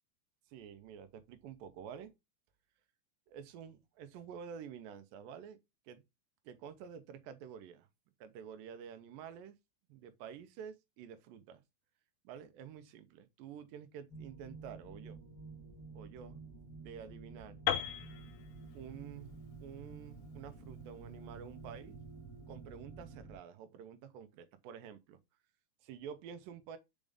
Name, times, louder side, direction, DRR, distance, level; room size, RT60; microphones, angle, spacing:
voice 1, 0.5-2.1 3.3-5.6 5.9-6.0 6.5-7.9 8.2-9.5 9.9-11.6 12.2-15.2 15.9-16.4 16.8-17.7 18.7-22.0 22.5-25.2 25.8-26.8, right 8 dB, 75° right, 2.2 m, -49 dB
sound 1, 14.1-23.4, right 4 dB, 5° left, 2.4 m, -51 dB
Piano, 17.7-21.6, left 11 dB, 85° left, 2.5 m, -39 dB
5.3 x 5.2 x 3.6 m
omnidirectional pair, 4.7 m